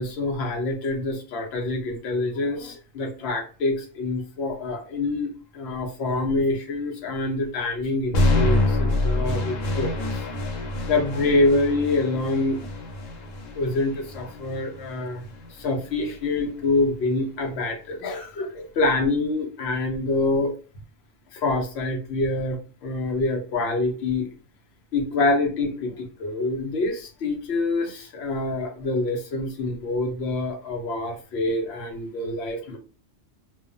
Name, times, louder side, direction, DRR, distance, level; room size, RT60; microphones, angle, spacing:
voice 1, 0.0-10.2 10.9-12.6 13.5-15.2 15.6-20.6 21.3-24.3 24.9-32.8, left 2 dB, 65° left, 3 dB, 0.8 m, -26 dB
sound 1, 8.1-16.2, left 1 dB, 90° left, 1.0 m, -26 dB
2.3 x 2.2 x 2.5 m, 0.36 s
omnidirectional pair, 1.3 m